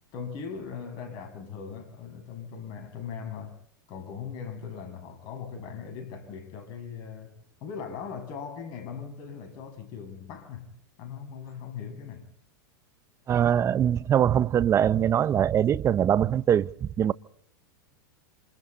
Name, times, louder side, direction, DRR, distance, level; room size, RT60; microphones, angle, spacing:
voice 1, 0.1-3.6 3.9-7.3 7.6-12.3, left 6 dB, 45° left, 7.7 m, -39 dB
voice 2, 13.3-17.1, right 9 dB, 25° right, 0.9 m, -23 dB
28.0 x 27.5 x 4.1 m
hypercardioid pair, 110°, 11 cm